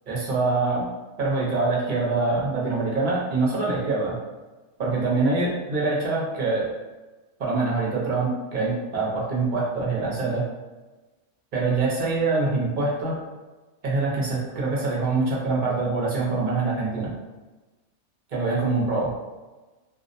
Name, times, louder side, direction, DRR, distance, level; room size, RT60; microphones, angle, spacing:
voice 1, 0.1-0.8 1.2-4.2 4.8-6.7 7.4-10.4 11.5-13.2 13.8-17.1 18.3-19.1, right 3 dB, 50° right, -5 dB, 0.7 m, -24 dB
2.5 x 2.0 x 2.5 m, 1.2 s
omnidirectional pair, 1.3 m